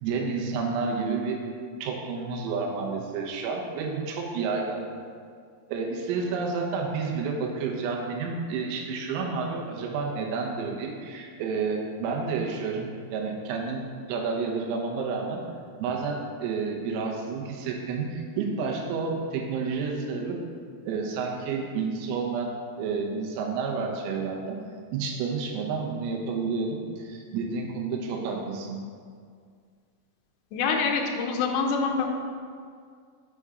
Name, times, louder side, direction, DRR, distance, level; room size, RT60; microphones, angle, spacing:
voice 1, 0.0-1.4 1.8-4.8 5.7-15.4 15.8-20.4 20.9-24.6 24.9-28.8, right 4 dB, 90° right, 0 dB, 3.6 m, -30 dB
voice 2, 30.5-32.1, left 5 dB, 85° left, 1 dB, 2.5 m, -25 dB
6.8 x 6.0 x 3.6 m, 2.1 s
omnidirectional pair, 5.9 m